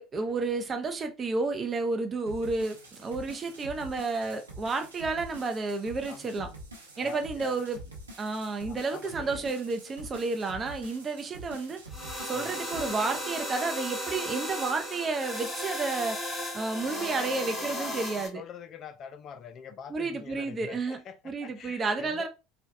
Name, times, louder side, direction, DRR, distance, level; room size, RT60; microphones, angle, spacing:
voice 1, 0.0-6.5 7.0-7.8 8.2-11.8 12.2-18.4 19.9-22.3, right 3 dB, 30° right, 0.6 m, -31 dB
sound 1, 2.3-13.2, right 1 dB, 90° right, 0.8 m, -46 dB
voice 2, 7.0-7.6 8.7-9.4 12.3-12.6 16.8-18.0 18.3-22.3, left 7 dB, 45° left, 0.4 m, -45 dB
sound 2, 11.9-18.3, equal, 5° left, 1.7 m, -35 dB
3.9 x 2.2 x 2.5 m
figure-of-eight pair, 70°, 0 cm